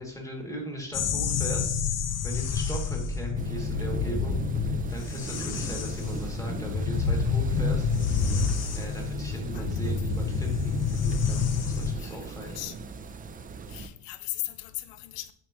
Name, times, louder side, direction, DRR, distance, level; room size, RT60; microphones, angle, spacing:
voice 1, 0.0-1.8 2.2-4.4 4.9-7.9 8.8-12.8, equal, 5° left, 2.5 m, -38 dB
sound 1, 0.9-12.0, left 5 dB, 35° left, 0.8 m, -28 dB
sound 2, 3.4-13.9, right 5 dB, 20° right, 0.5 m, -38 dB
voice 2, 13.7-15.3, left 17 dB, 65° left, 0.8 m, -37 dB
9.5 x 7.2 x 3.1 m
cardioid pair, 140°, 47 cm